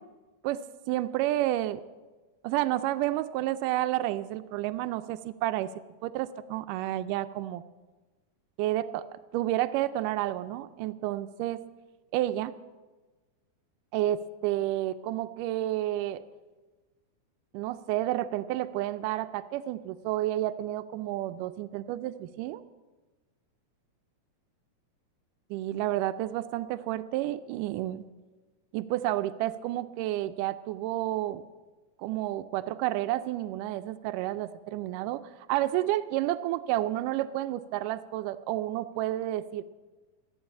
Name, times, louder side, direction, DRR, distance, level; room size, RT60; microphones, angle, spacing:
voice 1, 0.4-1.8 2.4-5.7 6.0-7.6 8.6-11.6 12.1-12.5 13.9-16.2 17.5-22.6 25.5-28.1 28.7-31.4 32.0-35.2 35.5-39.6, right 14 dB, 85° right, 11 dB, 2.2 m, -30 dB
13.5 x 9.6 x 8.4 m, 1.2 s
omnidirectional pair, 3.7 m